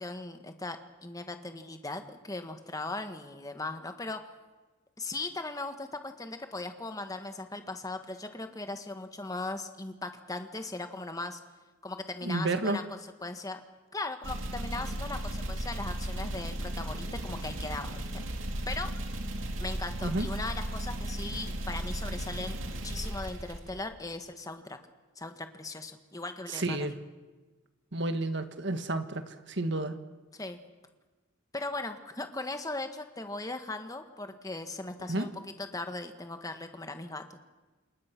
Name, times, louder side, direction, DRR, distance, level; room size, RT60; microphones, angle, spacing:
voice 1, 0.0-4.2 5.0-11.4 11.8-13.6 13.9-18.9 19.6-24.8 25.2-26.9 30.3-30.6 31.5-37.4, left 2 dB, 20° left, 7 dB, 1.7 m, -38 dB
voice 2, 12.2-12.8 20.0-20.3 26.5-26.9 27.9-30.0 35.1-35.3, right 2 dB, 60° right, 8 dB, 1.9 m, -31 dB
sound 1, 14.2-24.1, right 1 dB, 90° right, 2.6 m, -35 dB
28.5 x 27.0 x 6.2 m, 1.2 s
head